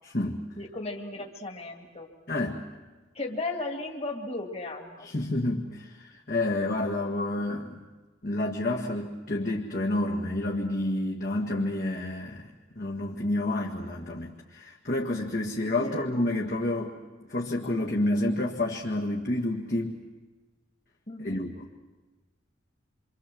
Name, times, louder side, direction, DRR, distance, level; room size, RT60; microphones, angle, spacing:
voice 1, 0.6-2.1 3.1-5.1 15.6-16.1 21.1-21.5, left 2 dB, 35° left, 2 dB, 2.3 m, -36 dB
voice 2, 2.3-2.6 5.0-7.8 8.2-12.5 12.8-16.9 17.3-20.0 21.2-21.6, left 1 dB, 50° left, -1 dB, 1.8 m, -29 dB
27.0 x 25.0 x 7.6 m, 1.3 s
head